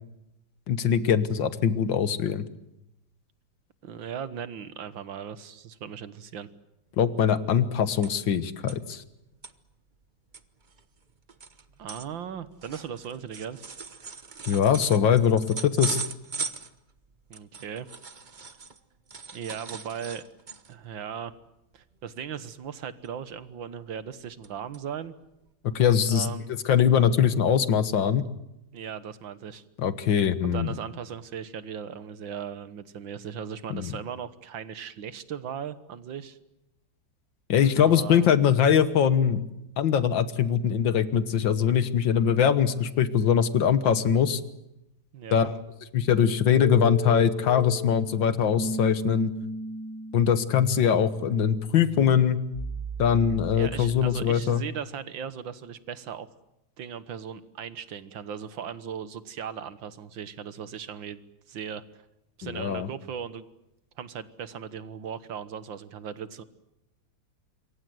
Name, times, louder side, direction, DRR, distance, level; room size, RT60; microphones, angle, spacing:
voice 1, 0.7-2.5 7.0-9.0 14.5-16.0 25.8-26.3 26.7-28.2 29.8-30.7 33.7-33.9 37.5-39.4 39.8-44.4 45.3-45.6 45.9-49.3 50.1-52.4 53.0-54.6 62.4-62.9, left 8 dB, 70° left, 13 dB, 2.0 m, -22 dB
voice 2, 3.8-6.5 11.8-13.6 17.3-17.9 19.3-20.2 20.7-21.3 21.7-25.1 26.1-26.5 28.7-29.6 30.4-36.4 37.8-38.3 45.1-45.5 53.5-56.3 56.8-61.2 61.5-61.8 62.4-63.5 64.0-66.4, right 8 dB, 70° right, 14 dB, 2.0 m, -38 dB
sound 1, 7.1-7.2 7.4-8.4 8.7-8.8 9.2-9.5 10.0-10.1 10.3-18.8 19.1-20.8 21.2-21.4 21.7-22.0 23.0-23.6 24.0-24.5 24.7-24.8 25.5-25.6, right 4 dB, 30° right, 1.0 m, -39 dB
sound 2, 46.5-54.4, equal, 10° left, 0.8 m, -36 dB
27.0 x 23.5 x 7.9 m, 0.89 s
omnidirectional pair, 2.2 m